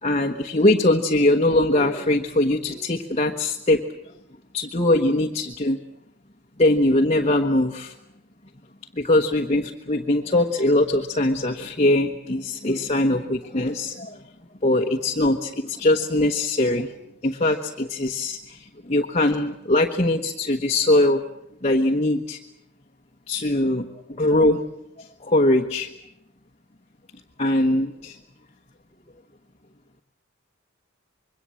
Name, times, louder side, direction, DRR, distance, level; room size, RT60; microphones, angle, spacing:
voice 1, 0.0-3.8 4.5-5.8 6.6-7.9 9.0-14.2 14.6-16.9 17.2-21.2 21.6-22.4 23.3-24.6 25.0-25.9 27.4-28.2, left 1 dB, 35° left, 3 dB, 1.3 m, -21 dB
26.0 x 22.5 x 7.7 m, 0.81 s
head